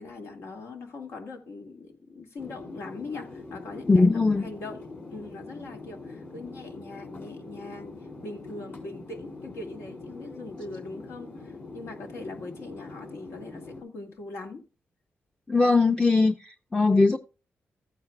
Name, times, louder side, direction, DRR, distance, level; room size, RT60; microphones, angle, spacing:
voice 1, 0.0-7.9 8.2-14.6, left 3 dB, 80° left, 2.1 m, -41 dB
sound 1, 2.4-13.8, left 3 dB, 45° left, 3.9 m, -43 dB
voice 2, 3.9-4.5 15.5-17.2, left 3 dB, 15° left, 0.6 m, -20 dB
14.0 x 9.3 x 2.3 m
cardioid pair, 70°, 5 cm